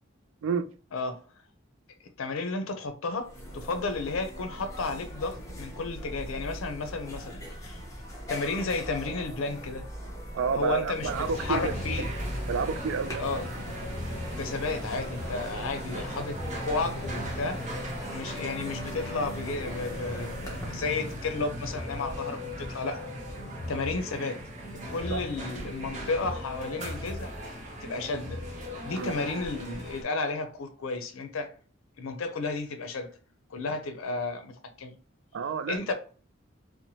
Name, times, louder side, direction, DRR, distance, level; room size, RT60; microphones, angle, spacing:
voice 1, 2.2-7.8 8.3-9.8 10.5-12.1 13.2-13.5 14.3-17.8 18.1-23.0 23.7-24.4 24.9-27.3 27.8-28.4 28.8-31.5 32.0-33.1 33.5-34.5 34.8-35.0 35.7-35.9, left 3 dB, 85° left, 0.5 m, -32 dB
sound 1, 2.9-3.0 3.2-20.7, equal, 15° left, 0.8 m, -41 dB
voice 2, 10.3-11.7 12.5-13.4 25.1-25.2 28.9-29.1 35.3-35.8, right 6 dB, 70° right, 0.3 m, -30 dB
sound 2, 11.0-30.0, equal, 35° right, 0.6 m, -37 dB
2.9 x 2.1 x 2.7 m
head